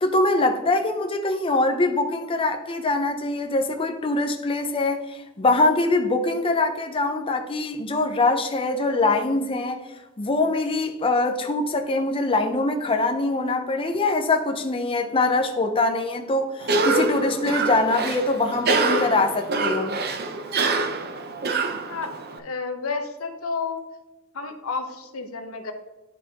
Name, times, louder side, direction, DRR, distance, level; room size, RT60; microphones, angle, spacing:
voice 1, 0.0-9.8 10.2-20.0, left 2 dB, 25° left, 4 dB, 0.5 m, -23 dB
Cough, 16.6-22.4, right 3 dB, 50° right, 0.7 m, -25 dB
voice 2, 21.9-23.8 24.3-25.7, left 4 dB, 85° left, 5 dB, 0.9 m, -31 dB
11.0 x 4.8 x 2.8 m, 1.1 s
head